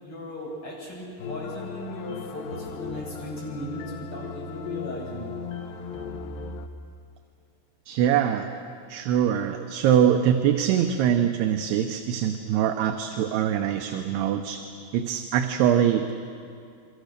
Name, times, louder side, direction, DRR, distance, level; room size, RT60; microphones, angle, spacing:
voice 1, 0.0-5.3, left 1 dB, 30° left, -4 dB, 8.6 m, -37 dB
sound 1, 1.2-6.7, left 5 dB, 70° left, 2.8 m, -37 dB
voice 2, 7.9-8.5 8.9-14.6 14.9-16.1, right 9 dB, 80° right, 5 dB, 3.0 m, -23 dB
29.5 x 24.0 x 6.7 m, 2.4 s
omnidirectional pair, 4.8 m